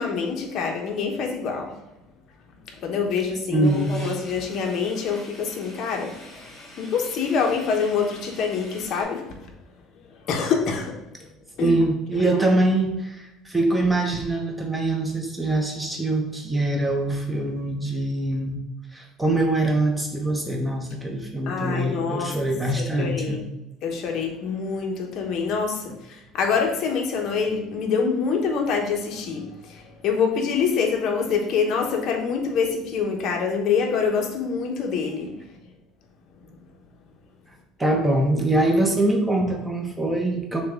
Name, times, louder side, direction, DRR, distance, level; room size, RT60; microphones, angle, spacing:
voice 1, 0.0-1.7 2.7-6.5 6.8-9.5 10.3-11.3 11.6-11.8 21.5-22.4 22.7-23.4 23.8-35.4, left 5 dB, 50° left, 2 dB, 0.8 m, -26 dB
voice 2, 3.5-3.9 11.6-18.6 18.9-23.4 37.8-40.6, right 2 dB, 10° right, 2 dB, 0.7 m, -23 dB
sound 1, 3.6-9.0, left 1 dB, 15° left, 1.3 m, -45 dB
6.5 x 2.2 x 3.6 m, 0.97 s
cardioid pair, 155°, 0 cm